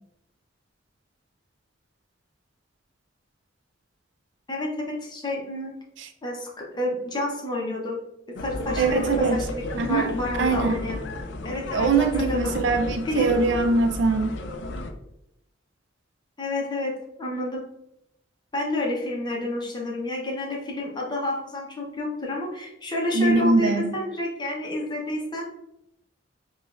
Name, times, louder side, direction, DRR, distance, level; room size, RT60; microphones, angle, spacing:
voice 1, 4.5-5.7 6.2-8.0 8.3-11.0 11.4-12.5 13.1-13.4 16.4-16.9 17.2-17.6 18.5-25.4, left 1 dB, 25° left, -2 dB, 0.8 m, -29 dB
sound 1, 8.4-14.9, left 2 dB, 65° left, 0.4 m, -33 dB
voice 2, 8.8-9.5 9.8-10.1 10.4-10.8 11.7-14.4 23.1-23.9, right 3 dB, 70° right, 6 dB, 0.4 m, -22 dB
4.9 x 2.4 x 2.4 m, 0.81 s
head